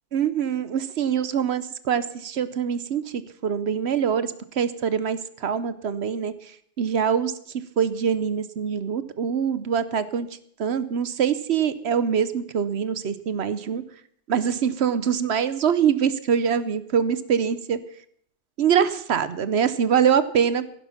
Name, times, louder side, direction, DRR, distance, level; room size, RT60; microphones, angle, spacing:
voice 1, 0.1-6.3 6.8-7.3 7.8-10.3 10.6-13.8 14.3-17.8 18.6-20.6, right 7 dB, 70° right, 14 dB, 1.1 m, -24 dB
15.0 x 11.0 x 5.8 m, 0.67 s
omnidirectional pair, 1.2 m